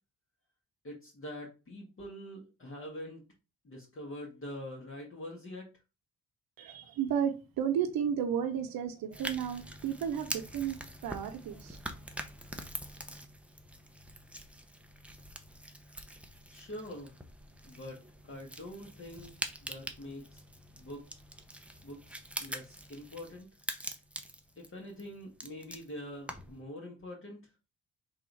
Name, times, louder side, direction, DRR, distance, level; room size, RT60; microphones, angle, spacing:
voice 1, 0.8-3.2 3.6-5.7 16.5-17.1 17.6-19.3 19.6-20.4 20.7-21.0 21.8-23.5 24.6-27.4, left 1 dB, 35° left, 1.5 m, -44 dB
voice 2, 6.6-11.8, right 8 dB, 75° right, 1.0 m, -33 dB
sound 1, 9.1-26.6, right 1 dB, 5° right, 0.7 m, -44 dB
3.5 x 2.7 x 4.6 m
supercardioid pair, 65°, 36 cm